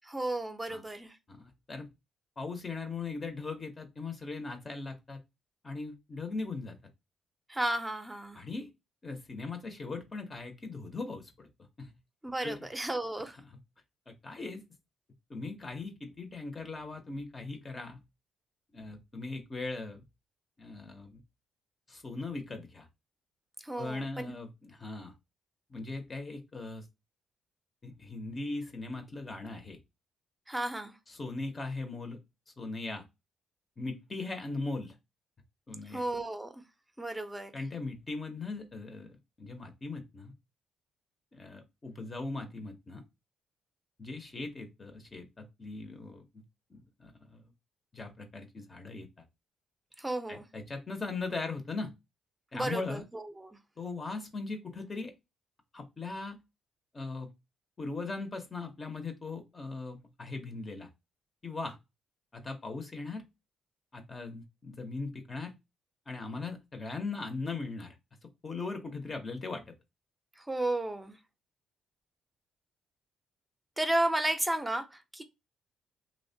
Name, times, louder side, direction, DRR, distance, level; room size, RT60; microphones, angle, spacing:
voice 1, 0.0-1.2 7.5-8.4 12.2-13.4 23.6-24.3 30.5-30.9 35.9-36.6 37.0-37.5 50.0-50.4 52.5-53.6 70.4-71.2 73.8-75.2, right 1 dB, 10° right, 0.5 m, -33 dB
voice 2, 1.3-1.9 2.4-5.2 5.6-6.8 8.3-8.7 9.0-11.5 11.8-11.9 12.4-12.6 13.4-13.6 14.1-14.6 15.3-18.0 18.7-20.0 20.6-21.2 21.9-22.9 23.8-25.1 25.7-26.8 27.8-29.8 31.1-32.2 32.6-33.0 33.8-35.0 35.7-36.0 37.5-40.3 41.3-43.0 44.0-46.2 46.7-47.4 47.9-49.1 50.3-51.9 52.5-53.0 53.8-55.1 55.7-56.4 56.9-57.3 57.8-60.9 61.4-61.8 62.3-63.2 63.9-65.5 66.1-68.0 68.4-69.8, left 3 dB, 35° left, 0.6 m, -39 dB
2.9 x 2.1 x 2.6 m
cardioid pair, 90°, 0 cm